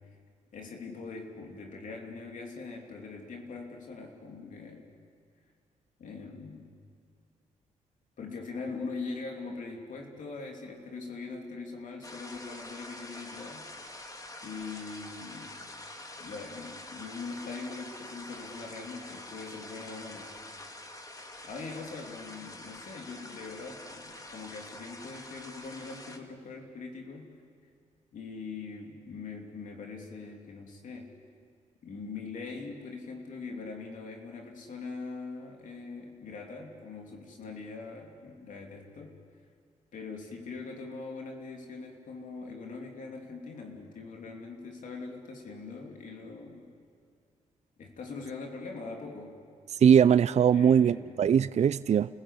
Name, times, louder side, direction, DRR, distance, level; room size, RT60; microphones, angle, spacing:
voice 1, 0.5-4.9 6.0-6.7 8.2-13.7 14.4-15.6 16.2-20.3 21.4-27.3 28.1-31.1 31.8-39.2 39.9-46.7 47.8-49.4 50.5-51.2, left 4 dB, 75° left, 3.2 m, -42 dB
sound 1, 12.0-26.2, left 2 dB, 25° left, 2.3 m, -46 dB
voice 2, 49.8-52.2, right 8 dB, 55° right, 0.5 m, -21 dB
30.0 x 15.0 x 8.5 m
cardioid pair, 60°, 14 cm